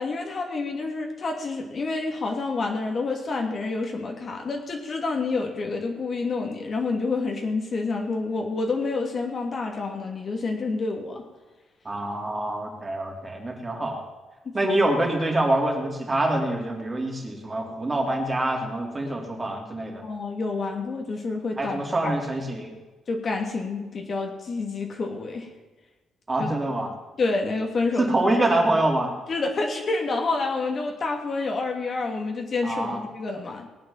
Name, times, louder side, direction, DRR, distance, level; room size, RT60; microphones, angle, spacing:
voice 1, 0.0-11.2 14.6-14.7 20.0-22.1 23.1-25.5 26.4-26.5 27.2-28.1 29.3-33.7, left 3 dB, 45° left, 2 dB, 2.9 m, -28 dB
voice 2, 11.9-14.0 14.5-20.0 21.6-22.7 26.3-26.9 28.0-29.1 32.6-33.0, right 1 dB, 25° right, 1 dB, 3.8 m, -25 dB
19.0 x 8.8 x 7.5 m, 1.2 s
cardioid pair, 90°, 0 cm